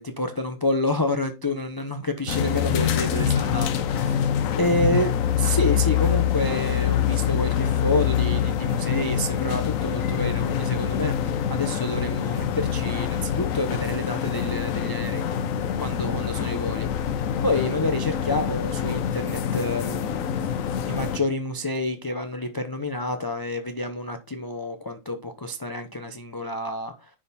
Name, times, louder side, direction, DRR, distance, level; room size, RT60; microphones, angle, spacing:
voice 1, 0.0-4.2 4.6-5.1 5.4-15.3 15.8-20.3 20.9-27.1, left 2 dB, 30° left, 0.4 m, -28 dB
sound 1, 2.3-21.2, left 8 dB, 80° left, 1.1 m, -25 dB
10.0 x 3.7 x 4.2 m
omnidirectional pair, 1.4 m